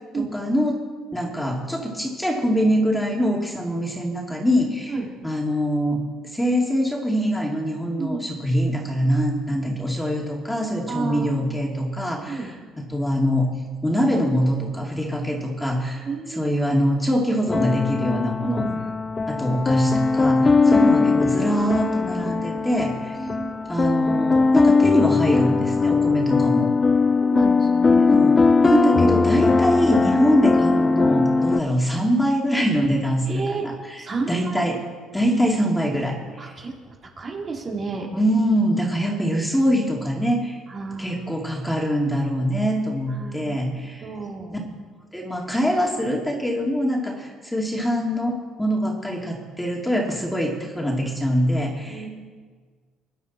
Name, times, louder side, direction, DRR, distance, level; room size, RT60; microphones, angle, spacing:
voice 1, 0.2-0.8 1.1-4.9 5.2-12.5 12.9-13.5 13.8-18.6 19.3-23.2 23.7-26.7 28.1-28.3 28.6-33.7 34.3-34.8 35.1-36.6 38.1-40.6 41.0-44.0 44.5-44.6 45.1-48.3 48.6-52.1, equal, 5° left, -1 dB, 2.7 m, -23 dB
voice 2, 8.0-8.3 9.5-9.8 10.9-11.5 12.3-12.5 16.0-16.5 18.4-18.8 20.6-20.8 23.1-23.5 27.2-28.1 30.1-30.3 31.3-31.5 33.2-33.6 34.0-34.7 36.4-38.1 40.7-41.2 43.1-44.6 51.9-52.1, right 4 dB, 35° right, -1 dB, 3.4 m, -31 dB
sound 1, 17.5-31.6, left 4 dB, 25° left, 0.4 m, -20 dB
21.0 x 10.0 x 4.3 m, 1.5 s
cardioid pair, 90°, 0 cm